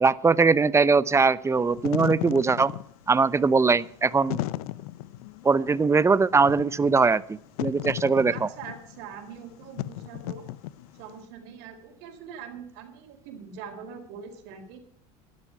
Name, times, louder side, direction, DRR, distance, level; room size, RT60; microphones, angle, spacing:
voice 1, 0.0-2.7 3.1-4.4 5.4-8.3, right 4 dB, 15° right, 18 dB, 0.7 m, -21 dB
Wind / Fire, 1.6-11.1, left 16 dB, 75° left, 0.7 m, -36 dB
voice 2, 8.3-10.5 10.9-14.8, right 7 dB, 65° right, 5 dB, 4.2 m, -42 dB
12.5 x 12.0 x 6.0 m, 0.63 s
supercardioid pair, 100°, 19 cm